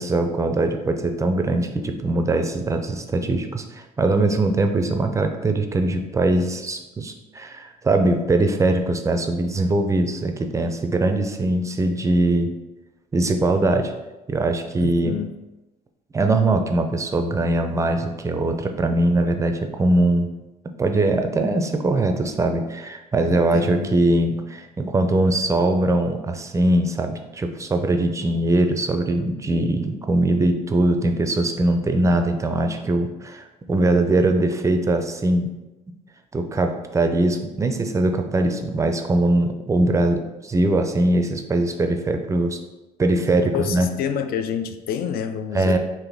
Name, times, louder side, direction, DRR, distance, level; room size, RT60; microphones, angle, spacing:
voice 1, 0.0-12.5 13.1-13.9 14.3-15.1 16.1-20.3 20.8-35.5 36.3-42.6 43.0-43.9 45.5-45.8, right 2 dB, 20° right, 6 dB, 0.4 m, -21 dB
voice 2, 14.8-15.4 23.3-23.9 43.5-45.8, left 8 dB, 65° left, 10 dB, 0.4 m, -28 dB
3.9 x 2.6 x 3.4 m, 1.0 s
cardioid pair, 110°, 17 cm